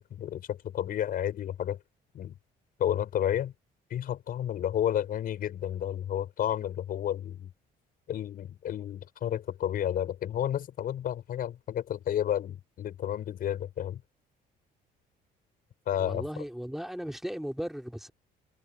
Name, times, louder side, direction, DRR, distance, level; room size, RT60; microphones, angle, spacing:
voice 1, 0.0-1.8 2.1-2.3 2.8-3.5 3.9-7.5 8.1-14.0 15.9-16.2, left 10 dB, 60° left, 5.4 m, -31 dB
voice 2, 16.0-18.1, equal, ahead, 3.2 m, -36 dB
cardioid pair, 110°, 17 cm